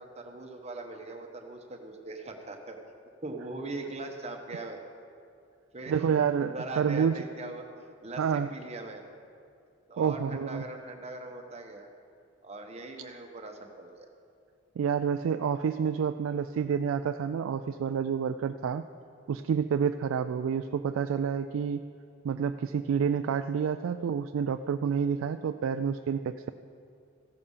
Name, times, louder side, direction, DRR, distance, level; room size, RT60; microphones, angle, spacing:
voice 1, 0.0-2.8 3.2-4.8 5.7-6.1 6.4-7.7 8.0-9.0 9.9-11.9 12.4-14.1, right 2 dB, 30° right, 3 dB, 1.0 m, -40 dB
voice 2, 5.9-7.2 8.2-8.5 10.0-10.6 14.8-18.8 19.3-21.8 22.2-26.5, right 7 dB, 75° right, 9 dB, 0.3 m, -29 dB
15.0 x 6.7 x 5.5 m, 2.4 s
head